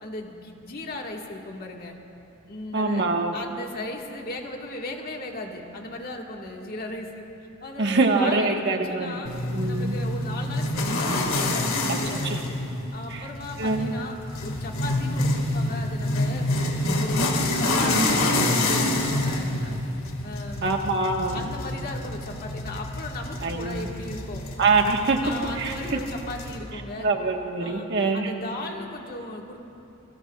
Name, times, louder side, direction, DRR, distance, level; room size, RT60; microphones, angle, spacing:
voice 1, 0.0-2.0 2.5-3.1 3.3-7.2 7.6-9.3 9.6-12.5 12.9-14.2 14.4-16.5 16.8-19.8 20.2-20.7 21.3-24.5 25.2-27.1 27.6-27.9 28.1-29.6, left 2 dB, 45° left, 0 dB, 1.7 m, -37 dB
voice 2, 2.7-3.4 7.8-9.2 9.5-10.0 12.2-12.4 13.1-13.3 13.6-13.9 17.8-18.1 20.6-21.4 23.4-23.9 24.6-25.2 25.6-26.0 27.0-28.3, right 3 dB, 55° right, 2 dB, 1.4 m, -24 dB
sound 1, 9.3-26.6, left 2 dB, 70° left, 2.0 m, -27 dB
27.5 x 22.0 x 2.4 m, 2.8 s
head